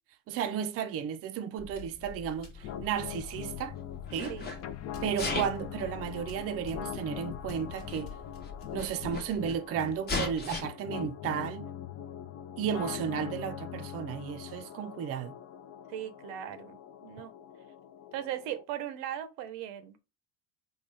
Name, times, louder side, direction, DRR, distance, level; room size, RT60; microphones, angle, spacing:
voice 1, 0.3-3.8 4.1-4.3 5.0-8.1 8.7-11.7 12.6-15.3, right 8 dB, 35° right, 0.4 m, -33 dB
sound 1, 1.6-8.9, left 6 dB, 55° left, 1.1 m, -47 dB
sound 2, 2.6-18.6, left 10 dB, 40° left, 0.4 m, -42 dB
Sneeze, 2.6-3.6 4.1-4.6 5.1-5.7 6.6-6.7 7.6-7.7 7.9-8.0 8.4-9.6 10.1-10.6, left 3 dB, 25° left, 0.8 m, -35 dB
voice 2, 15.9-17.3 18.1-20.0, right 11 dB, 75° right, 0.6 m, -39 dB
3.7 x 2.3 x 3.2 m
supercardioid pair, 95°, 41 cm